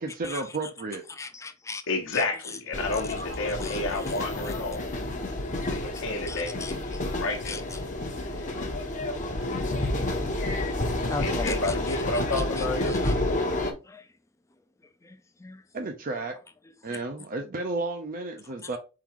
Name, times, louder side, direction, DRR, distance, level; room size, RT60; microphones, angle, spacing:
voice 1, 0.0-1.0 15.7-16.3 16.8-18.8, right 3 dB, 40° right, 0.6 m, -32 dB
voice 2, 1.1-1.8 2.1-2.2 3.6-4.6 5.0-5.4 5.9-7.0 7.5-7.8 8.2-8.7 9.4-10.3 11.1-13.1 13.9-14.0 15.0-15.6 16.9-17.0 18.7-18.8, left 4 dB, 15° left, 0.5 m, -40 dB
voice 3, 1.9-4.8 5.7-6.8 7.2-7.6 11.2-13.0, left 2 dB, 60° left, 1.0 m, -30 dB
sound 1, 2.7-13.7, left 1 dB, 35° left, 0.9 m, -30 dB
4.6 x 3.8 x 3.0 m
head